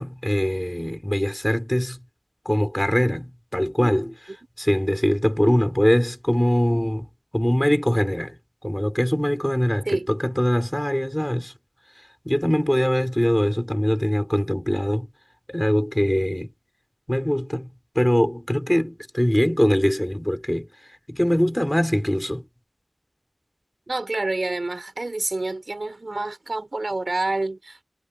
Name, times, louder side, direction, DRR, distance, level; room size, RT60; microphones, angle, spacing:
voice 1, 0.0-2.0 2.4-7.1 7.3-8.4 8.6-11.5 12.2-15.1 15.5-16.5 17.1-17.7 17.9-20.7 21.1-22.4, equal, 10° left, 4.7 m, -22 dB
voice 2, 23.9-27.8, right 2 dB, 75° right, 3.5 m, -28 dB
wide cardioid pair, 40°, 0 cm